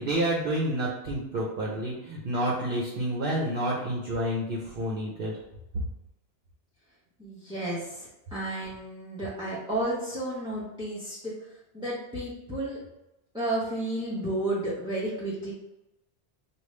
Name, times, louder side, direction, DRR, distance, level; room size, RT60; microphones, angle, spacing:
voice 1, 0.0-5.4, right 1 dB, 55° right, -2 dB, 0.9 m, -29 dB
voice 2, 7.2-11.3 11.7-12.8 13.3-15.5, right 1 dB, 5° right, -9 dB, 0.8 m, -32 dB
5.1 x 2.4 x 3.2 m, 0.95 s
omnidirectional pair, 1.2 m